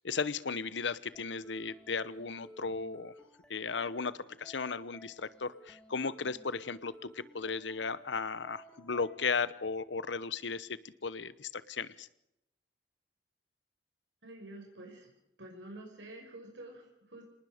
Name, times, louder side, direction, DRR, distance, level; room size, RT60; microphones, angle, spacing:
voice 1, 0.0-3.1 3.5-4.1 4.4-12.1, left 4 dB, 80° left, 18 dB, 1.0 m, -35 dB
sound 1, 1.1-9.2, equal, 5° left, 2.6 m, -56 dB
voice 2, 14.2-15.1 15.4-17.2, right 1 dB, 90° right, 0 dB, 5.8 m, -48 dB
26.0 x 19.5 x 5.1 m, 0.82 s
head